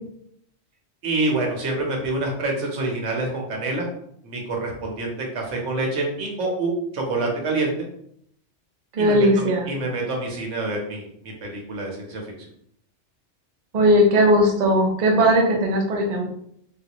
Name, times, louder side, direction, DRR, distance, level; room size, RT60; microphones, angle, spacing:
voice 1, 1.0-3.9 4.2-7.7 9.0-12.5, right 2 dB, 90° right, 0 dB, 1.2 m, -27 dB
voice 2, 8.9-9.7 13.7-16.3, equal, 45° right, 0 dB, 0.7 m, -18 dB
3.6 x 2.5 x 2.9 m, 0.70 s
omnidirectional pair, 1.2 m